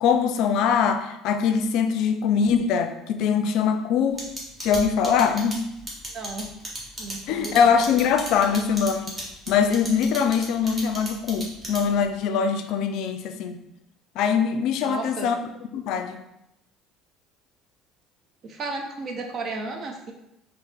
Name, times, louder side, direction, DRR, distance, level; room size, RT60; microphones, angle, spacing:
voice 1, 0.0-4.3 4.6-5.6 7.3-9.1 9.5-13.6 14.2-15.3 15.7-16.2, left 6 dB, 65° left, 7 dB, 0.3 m, -22 dB
sound 1, 4.2-12.1, right 1 dB, 25° right, 1.4 m, -35 dB
voice 2, 6.1-6.5 7.0-7.8 14.8-15.3 18.4-20.1, right 3 dB, 50° right, 3 dB, 0.6 m, -33 dB
4.1 x 2.0 x 3.3 m, 0.84 s
hypercardioid pair, 75°, 0 cm